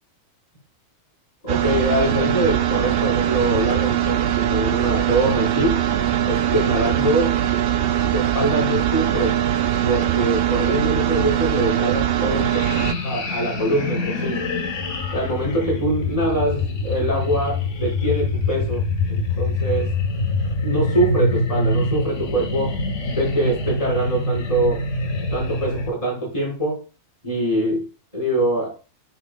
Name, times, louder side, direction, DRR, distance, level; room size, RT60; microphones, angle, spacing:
voice 1, 1.4-5.8 6.3-7.4 8.1-9.4 9.8-12.5 13.0-14.4 15.1-18.8 19.1-20.0 20.6-22.8 23.1-24.8 25.3-26.8 27.2-27.9 28.1-28.8, right 1 dB, 20° left, -5 dB, 4.4 m, -23 dB
sound 1, 1.5-12.9, right 11 dB, 75° right, 0.5 m, -21 dB
sound 2, 12.4-25.9, left 2 dB, 55° left, 1.5 m, -25 dB
8.5 x 5.9 x 2.2 m, 0.30 s
omnidirectional pair, 1.6 m